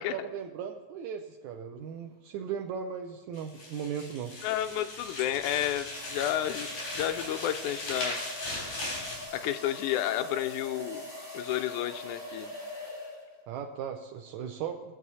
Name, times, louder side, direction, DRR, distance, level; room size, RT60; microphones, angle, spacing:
voice 1, 0.1-4.3 13.5-14.9, right 7 dB, 90° right, 4 dB, 1.6 m, -37 dB
sound 1, 2.3-2.6 4.3-13.5, left 2 dB, 15° left, 3.1 m, -43 dB
sound 2, 3.3-9.3, left 1 dB, 50° left, 4.9 m, -38 dB
voice 2, 4.4-6.7 6.9-8.2 9.3-11.1 11.3-12.5, left 12 dB, 85° left, 8 dB, 1.7 m, -31 dB
20.0 x 7.5 x 4.1 m, 1.3 s
omnidirectional pair, 4.0 m